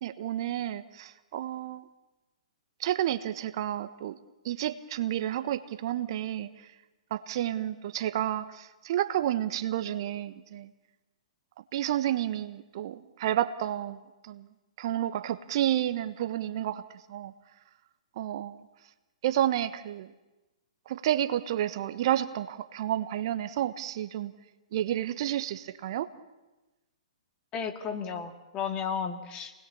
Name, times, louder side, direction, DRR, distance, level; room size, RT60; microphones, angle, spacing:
voice 1, 0.0-1.8 2.8-4.2 4.4-6.7 7.1-10.7 11.7-14.5 14.8-17.3 18.2-18.7 19.2-20.1 20.9-24.3 24.7-26.1, right 12 dB, 45° right, 11 dB, 1.2 m, -30 dB
voice 2, 27.5-29.5, left 6 dB, 25° left, 5 dB, 2.4 m, -33 dB
29.0 x 20.0 x 7.1 m, 1.1 s
figure-of-eight pair, 120°, 4 cm